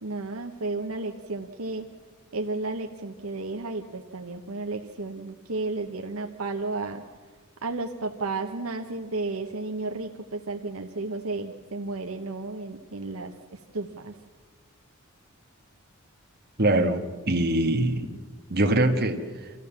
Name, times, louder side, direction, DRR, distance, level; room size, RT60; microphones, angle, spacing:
voice 1, 0.0-1.9 2.3-7.0 7.6-14.1, right 3 dB, 70° right, 3 dB, 1.1 m, -33 dB
voice 2, 16.6-17.0 17.3-18.2 18.5-19.2, right 1 dB, 50° right, 4 dB, 1.7 m, -22 dB
26.0 x 15.0 x 7.3 m, 1.5 s
head